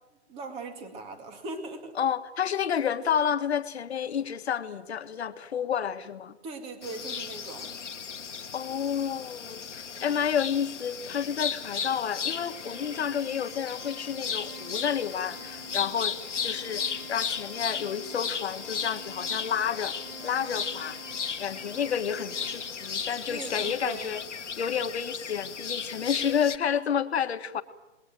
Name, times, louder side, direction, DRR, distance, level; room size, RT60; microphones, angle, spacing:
voice 1, 0.3-2.0 6.4-7.8 23.3-24.1, right 3 dB, 15° right, 7 dB, 2.3 m, -39 dB
voice 2, 2.0-6.4 8.5-16.2 16.4-16.8 17.1-20.0 20.2-21.0 21.4-24.2 24.6-27.6, left 8 dB, 60° left, 9 dB, 1.8 m, -30 dB
sound 1, 6.8-26.6, left 6 dB, 90° left, 1.8 m, -35 dB
Organ, 12.4-23.2, right 6 dB, 40° right, 1.5 m, -49 dB
28.5 x 21.0 x 7.7 m, 1.0 s
hypercardioid pair, 155°, 35 cm